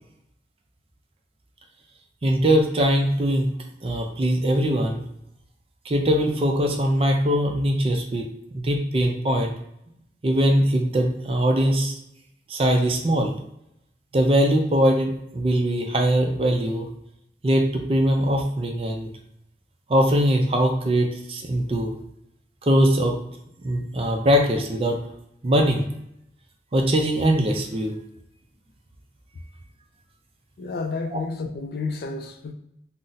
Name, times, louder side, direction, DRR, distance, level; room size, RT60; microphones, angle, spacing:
voice 1, 2.2-3.5 3.8-5.0 5.9-8.3 8.5-9.5 10.2-12.0 12.5-13.3 14.1-16.9 17.4-19.1 19.9-21.9 22.6-23.2 23.6-25.0 25.4-25.9 26.7-27.9 31.1-31.2, equal, 30° right, 3 dB, 0.4 m, -21 dB
voice 2, 30.6-32.5, left 3 dB, 60° left, 6 dB, 0.3 m, -30 dB
2.6 x 2.0 x 3.8 m, 0.78 s
head